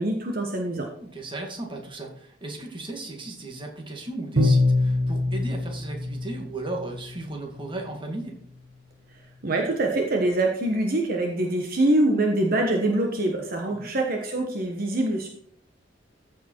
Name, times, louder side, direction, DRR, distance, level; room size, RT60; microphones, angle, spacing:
voice 1, 0.0-0.9 9.4-15.3, right 1 dB, 50° right, 1 dB, 1.3 m, -24 dB
voice 2, 1.0-8.4 13.7-13.9, right 2 dB, 25° right, 1 dB, 2.0 m, -36 dB
Bowed string instrument, 4.4-7.2, left 2 dB, 65° right, 1.4 m, -24 dB
14.5 x 5.1 x 4.5 m, 0.66 s
head